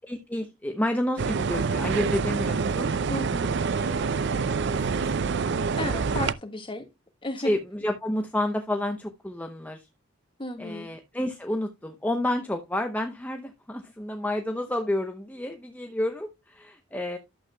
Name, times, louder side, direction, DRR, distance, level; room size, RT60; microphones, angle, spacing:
voice 1, 0.0-2.9 3.8-6.0 7.4-9.9 10.6-17.2, left 1 dB, 10° left, 0.7 m, -30 dB
sound 1, 1.2-6.3, right 5 dB, 55° right, 0.5 m, -26 dB
voice 2, 3.1-3.6 5.8-6.8 7.2-7.5 10.4-10.9, left 2 dB, 25° left, 1.6 m, -34 dB
12.0 x 7.6 x 2.2 m
head